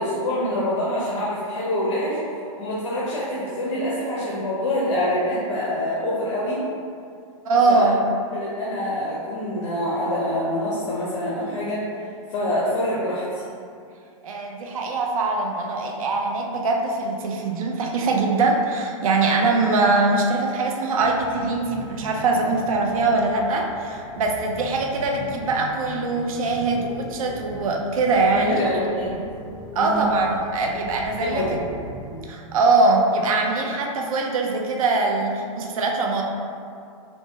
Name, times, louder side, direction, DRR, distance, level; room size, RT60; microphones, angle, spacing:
voice 1, 0.0-6.6 7.7-7.9 8.3-11.8 12.3-13.4 19.3-19.4 28.3-29.1 29.8-30.1 31.2-31.6, left 1 dB, 60° left, -6 dB, 0.7 m, -26 dB
voice 2, 7.4-8.0 14.2-28.7 29.7-31.4 32.3-36.2, right 3 dB, 80° right, 1 dB, 0.5 m, -22 dB
sound 1, 21.0-32.3, equal, 15° left, 0.8 m, -39 dB
4.5 x 2.1 x 2.8 m, 2.4 s
hypercardioid pair, 145°, 18 cm